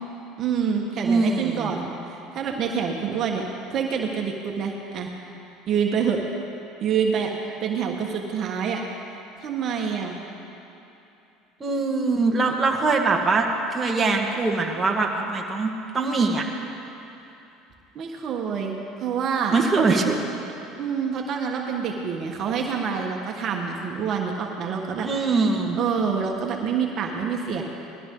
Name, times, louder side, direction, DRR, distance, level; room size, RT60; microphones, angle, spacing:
voice 1, 0.4-3.4 3.7-5.1 5.7-6.2 6.8-7.3 7.6-8.8 9.4-10.2 17.9-19.5 20.8-25.1 25.7-27.6, right 6 dB, 50° right, 1 dB, 1.5 m, -27 dB
voice 2, 1.0-1.7 11.6-15.7 15.9-16.5 19.5-20.3 25.0-25.8, right 3 dB, 25° right, 0 dB, 1.7 m, -22 dB
20.5 x 13.5 x 3.9 m, 2.8 s
supercardioid pair, 95°, 0 cm